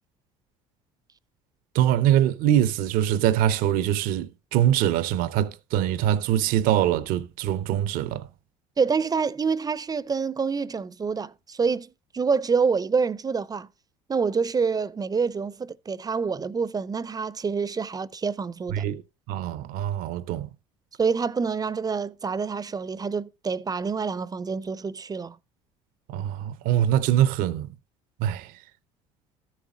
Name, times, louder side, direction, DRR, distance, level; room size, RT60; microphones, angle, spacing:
voice 1, 1.7-8.3 18.7-19.0 19.3-20.5 26.1-27.7 28.2-28.5, right 11 dB, 65° right, 0.7 m, -23 dB
voice 2, 8.8-11.9 12.1-13.7 14.1-18.9 21.0-25.4, right 5 dB, 25° right, 0.6 m, -27 dB
13.0 x 7.4 x 3.8 m
hypercardioid pair, 65°, 16 cm